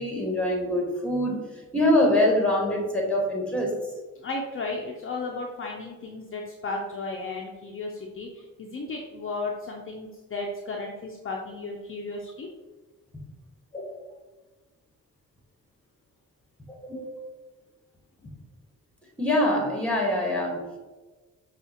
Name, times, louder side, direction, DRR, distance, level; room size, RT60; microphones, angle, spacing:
voice 1, 0.0-1.4 1.7-3.7 13.1-13.2 13.7-14.0 16.8-17.3 18.2-18.3 19.2-20.8, left 1 dB, 5° left, -1 dB, 1.3 m, -24 dB
voice 2, 4.2-12.5, left 3 dB, 40° left, 0 dB, 0.5 m, -34 dB
5.5 x 2.4 x 2.8 m, 1.2 s
cardioid pair, 60°, 34 cm